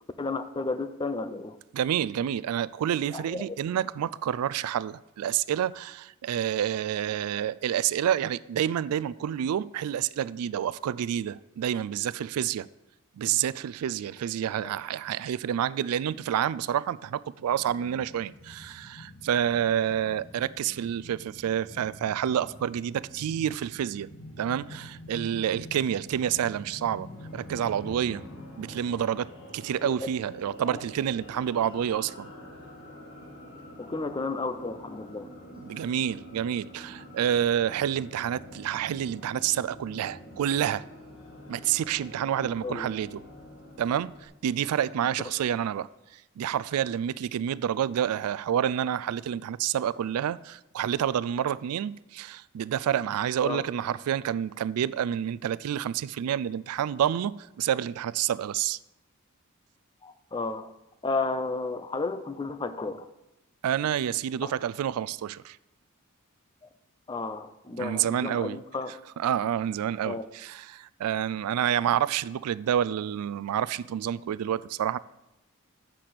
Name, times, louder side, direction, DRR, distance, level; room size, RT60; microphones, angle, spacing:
voice 1, 0.2-1.6 3.1-3.6 14.6-14.8 29.8-29.9 33.8-35.3 42.6-42.9 53.4-53.6 60.0-60.7 61.0-63.1 64.4-64.5 67.1-68.9 70.0-70.3, left 3 dB, 20° left, 0.4 m, -32 dB
voice 2, 1.7-12.7 13.2-24.1 24.4-27.1 27.3-28.2 28.6-32.3 35.6-40.9 41.5-43.2 43.8-45.9 46.4-58.8 63.6-65.6 67.8-68.6 69.2-75.0, right 9 dB, 85° right, 0.3 m, -28 dB
sound 1, 17.3-30.5 30.8-30.9, left 1 dB, 80° left, 1.7 m, -47 dB
sound 2, 27.0-44.3, left 1 dB, 60° left, 1.7 m, -47 dB
7.5 x 5.9 x 6.6 m
head